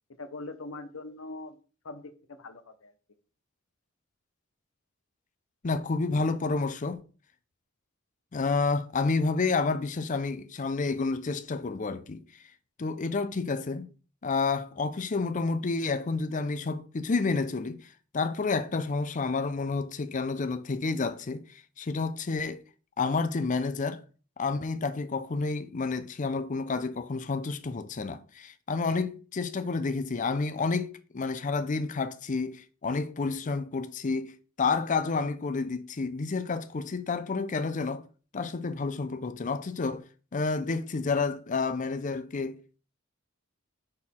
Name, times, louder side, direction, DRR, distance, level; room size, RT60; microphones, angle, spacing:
voice 1, 0.2-1.6 1.8-2.9, left 2 dB, 80° left, 0.9 m, -42 dB
voice 2, 5.6-7.0 8.3-12.2 12.8-13.9 14.2-17.8 18.1-22.6 23.0-24.0 24.4-38.0 38.3-40.0 40.3-42.6, left 4 dB, 40° left, 0.5 m, -30 dB
6.1 x 4.4 x 3.6 m
head